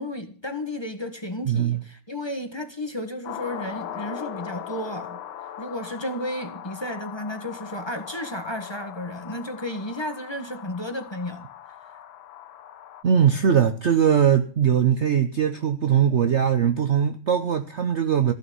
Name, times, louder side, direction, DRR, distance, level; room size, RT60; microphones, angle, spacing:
voice 1, 0.0-5.2 5.6-11.5, left 1 dB, 15° left, 1.3 m, -33 dB
voice 2, 1.5-1.8 13.0-18.3, right 8 dB, 70° right, 0.6 m, -20 dB
sound 1, 3.2-13.0, left 10 dB, 70° left, 1.6 m, -39 dB
15.5 x 6.2 x 9.3 m
omnidirectional pair, 2.3 m